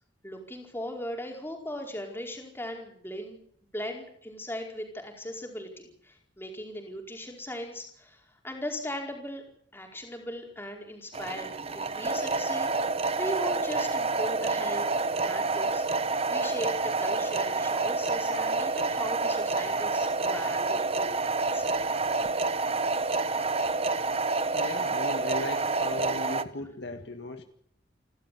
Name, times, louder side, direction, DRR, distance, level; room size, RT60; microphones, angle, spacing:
voice 1, 0.2-3.4 3.7-9.4 9.7-12.7 13.1-14.9 15.2-15.8 16.3-16.7 17.0-21.2 21.5-21.8, left 1 dB, 10° left, 1 dB, 4.7 m, -38 dB
sound 1, 11.1-26.4, right 3 dB, 30° right, 1.0 m, -28 dB
voice 2, 24.5-27.4, left 1 dB, 65° left, 6 dB, 1.9 m, -37 dB
29.0 x 13.0 x 8.4 m, 0.67 s
head